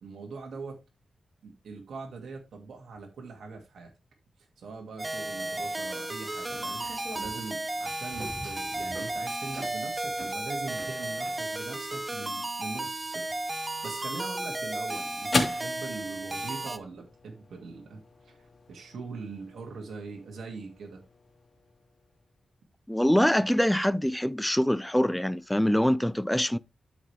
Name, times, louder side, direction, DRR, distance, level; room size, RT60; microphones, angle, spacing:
voice 1, 0.0-0.8 1.4-3.9 4.6-6.8 7.2-21.0, right 4 dB, 80° right, 2.4 m, -42 dB
sound 1, 5.0-16.8, right 2 dB, 20° right, 0.9 m, -34 dB
sound 2, 6.3-11.7, right 2 dB, 55° right, 5.8 m, -45 dB
sound 3, 14.0-22.6, left 3 dB, 35° left, 2.5 m, -37 dB
voice 2, 22.9-26.6, equal, 5° left, 0.5 m, -24 dB
12.5 x 5.2 x 3.4 m
cardioid pair, 90°, 0 cm